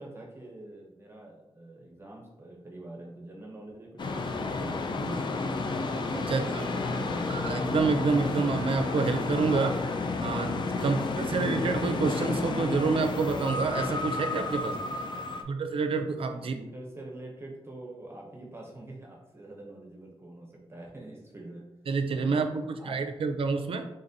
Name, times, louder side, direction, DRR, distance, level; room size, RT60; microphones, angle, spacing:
voice 1, 0.0-5.5 6.2-7.2 14.8-15.5 16.3-21.6 22.2-23.0, right 1 dB, 25° right, -1 dB, 0.7 m, -45 dB
sound 1, 4.0-15.4, left 3 dB, 45° left, 0.4 m, -31 dB
voice 2, 6.1-6.6 7.3-9.8 10.2-14.8 15.5-16.5 21.9-23.9, right 4 dB, 60° right, 7 dB, 0.4 m, -28 dB
3.9 x 3.7 x 2.7 m, 0.96 s
wide cardioid pair, 130°, 11 cm